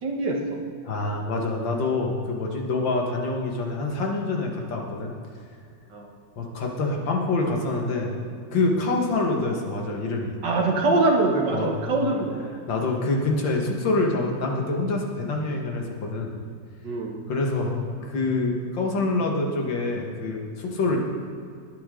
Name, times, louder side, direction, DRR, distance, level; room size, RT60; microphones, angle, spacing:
voice 1, 0.0-0.6 5.9-6.1 10.4-12.5 16.8-17.2, right 2 dB, 70° right, 1 dB, 2.1 m, -23 dB
voice 2, 0.8-5.1 6.4-8.2 8.5-10.4 11.5-11.7 12.0-12.1 12.7-16.3 17.3-21.0, left 3 dB, 80° left, 1 dB, 2.3 m, -26 dB
20.0 x 8.7 x 3.8 m, 2.3 s
omnidirectional pair, 2.0 m